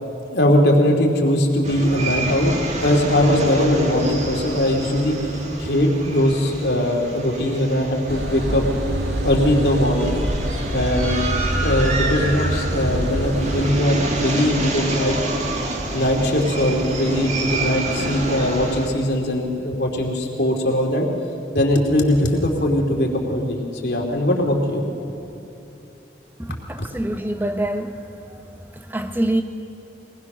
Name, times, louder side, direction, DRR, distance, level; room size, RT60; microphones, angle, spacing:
voice 1, 0.3-5.2 5.6-8.6 9.2-10.2 10.7-11.2 11.5-15.2 15.9-21.1 21.5-23.6 23.8-25.1, left 1 dB, 70° left, 2.8 m, -20 dB
sound 1, 1.6-18.9, right 2 dB, 40° right, 1.9 m, -28 dB
sound 2, 8.1-13.7, equal, 75° right, 1.9 m, -25 dB
voice 2, 26.4-28.0 28.3-28.4 28.7-29.4, right 1 dB, 10° right, 0.9 m, -25 dB
23.0 x 19.5 x 6.2 m
head